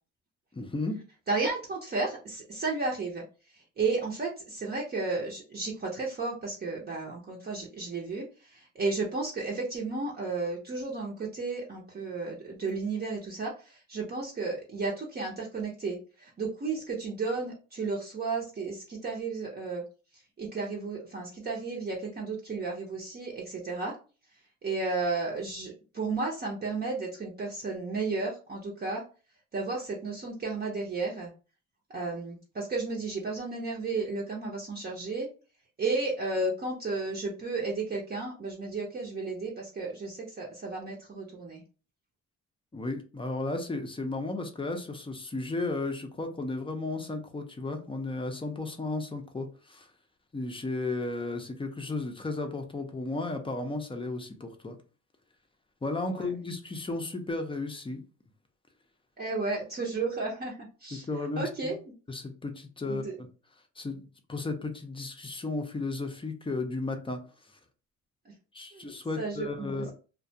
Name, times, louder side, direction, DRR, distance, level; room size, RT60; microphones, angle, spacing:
voice 1, 0.5-1.0 42.7-49.9 50.3-54.8 55.8-58.0 61.1-61.7 62.1-63.0 63.8-64.0 64.3-67.2 68.5-69.9, left 2 dB, 15° left, 5 dB, 0.5 m, -34 dB
voice 2, 1.3-19.8 20.1-24.0 24.6-29.0 29.5-31.3 31.9-35.3 35.8-41.6 56.1-56.3 59.2-61.1 61.3-61.8 62.8-63.2 68.2-68.3 68.7-68.9 69.2-69.8, right 3 dB, 35° right, -3 dB, 0.7 m, -33 dB
2.3 x 2.2 x 2.7 m, 0.35 s
cardioid pair, 90°, 30 cm